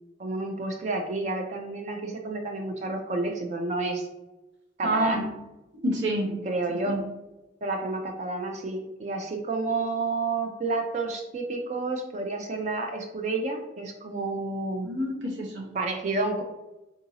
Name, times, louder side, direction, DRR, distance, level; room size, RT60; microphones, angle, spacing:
voice 1, 0.2-4.1 4.8-5.3 6.4-7.0 7.6-14.9 15.7-16.4, right 3 dB, 40° right, 4 dB, 0.3 m, -30 dB
voice 2, 4.8-5.3 5.8-7.0 14.8-15.7, right 1 dB, 85° right, 0 dB, 0.9 m, -28 dB
3.7 x 2.7 x 2.7 m, 1.0 s
head